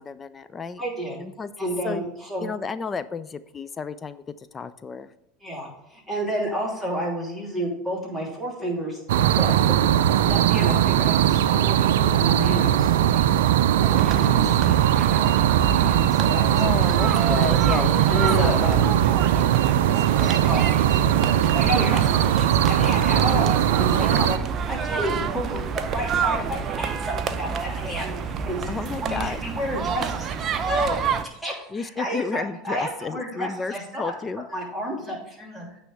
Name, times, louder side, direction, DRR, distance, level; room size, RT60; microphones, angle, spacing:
voice 1, 0.0-0.8 1.2-1.5 1.8-2.0 2.4-4.2 4.5-5.1 16.5-18.6 24.0-24.3 28.7-29.4 31.7-34.4, left 5 dB, 25° left, 13 dB, 0.4 m, -32 dB
voice 2, 0.8-1.2 1.6-2.5 5.4-9.0 9.3-13.3 14.1-16.6 17.0-17.1 17.7-18.9 19.3-19.8 20.0-21.1 21.5-24.4 24.7-35.8, equal, ahead, -4 dB, 2.9 m, -31 dB
sound 1, 9.1-24.4, right 11 dB, 75° right, 0.4 m, -20 dB
sound 2, 13.8-31.2, right 6 dB, 40° right, 0.6 m, -28 dB
8.8 x 3.5 x 6.7 m, 0.78 s
hypercardioid pair, 95°, 0 cm